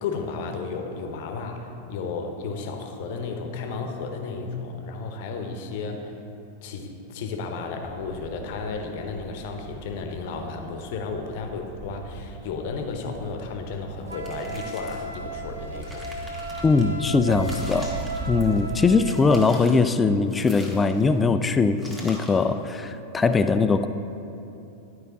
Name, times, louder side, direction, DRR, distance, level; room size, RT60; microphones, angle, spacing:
voice 1, 0.0-6.2 6.6-16.1, left 4 dB, 50° left, 4 dB, 0.8 m, -33 dB
sound 1, 7.8-18.8, right 3 dB, 30° right, 0.6 m, -39 dB
sound 2, 14.1-15.1 15.6-16.8 17.3-18.8 19.1-19.9 20.3-21.2 21.8-22.5, equal, 10° right, 1.3 m, -43 dB
Wind instrument woodwind instrument, 14.1-19.5, right 1 dB, 85° right, 0.6 m, -36 dB
voice 2, 16.6-17.9 18.3-23.9, left 4 dB, 15° left, 10 dB, 0.3 m, -21 dB
11.5 x 4.7 x 4.1 m, 2.8 s
figure-of-eight pair, 90°, 0 cm